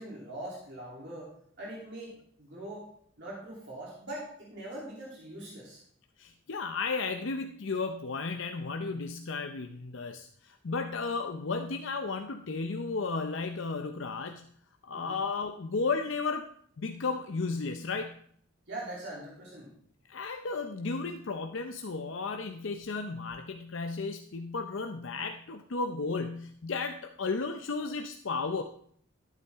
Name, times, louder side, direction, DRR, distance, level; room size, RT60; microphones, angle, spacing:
voice 1, 0.0-2.9 3.2-5.8 14.9-15.2 18.7-19.7, right 1 dB, 55° right, -4 dB, 3.0 m, -42 dB
voice 2, 6.2-14.5 14.8-16.5 16.8-18.2 20.1-28.6, left 4 dB, 65° left, 5 dB, 0.6 m, -34 dB
12.5 x 8.6 x 3.5 m, 0.64 s
head